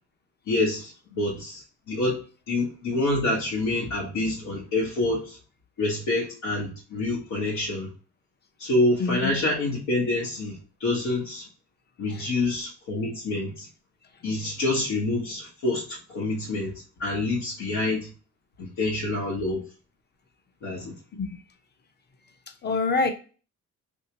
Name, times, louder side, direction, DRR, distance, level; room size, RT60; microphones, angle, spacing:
voice 1, 0.5-2.2 2.5-5.4 5.8-7.9 8.6-11.4 12.0-13.7 14.2-16.7 17.0-18.1 18.6-19.6 20.6-20.9, left 2 dB, 75° left, -5 dB, 1.1 m, -27 dB
voice 2, 9.0-9.3 12.1-12.3 21.2-21.4 22.6-23.1, left 3 dB, 35° left, 7 dB, 0.7 m, -26 dB
3.3 x 2.8 x 2.9 m, 0.37 s
cardioid pair, 90°, 30 cm